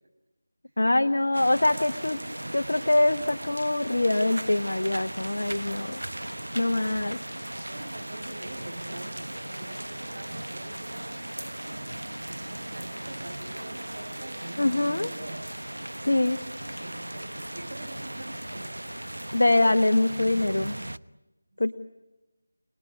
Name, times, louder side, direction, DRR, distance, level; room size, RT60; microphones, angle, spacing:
voice 1, 0.8-2.2 2.5-7.2 14.6-15.1 16.0-16.4 19.3-20.8 21.6-21.7, left 2 dB, 70° left, 6 dB, 1.3 m, -24 dB
sound 1, 1.3-21.0, right 1 dB, 85° right, 1.0 m, -37 dB
voice 2, 6.8-15.4 16.0-18.9 21.5-21.7, right 1 dB, 45° right, 1 dB, 6.0 m, -45 dB
30.0 x 20.5 x 9.6 m, 1.0 s
figure-of-eight pair, 165°, 0 cm